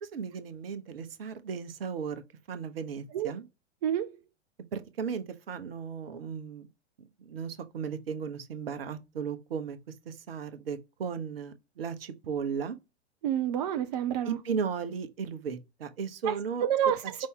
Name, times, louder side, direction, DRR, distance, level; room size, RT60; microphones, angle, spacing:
voice 1, 0.0-2.2 2.5-3.5 4.7-6.7 7.0-9.8 10.1-12.8 14.3-16.6, right 6 dB, 55° right, 0.9 m, -36 dB
voice 2, 13.2-14.4 16.3-16.4 16.6-17.3, right 10 dB, 35° right, 0.5 m, -28 dB
5.2 x 2.7 x 3.6 m
figure-of-eight pair, 100°, 34 cm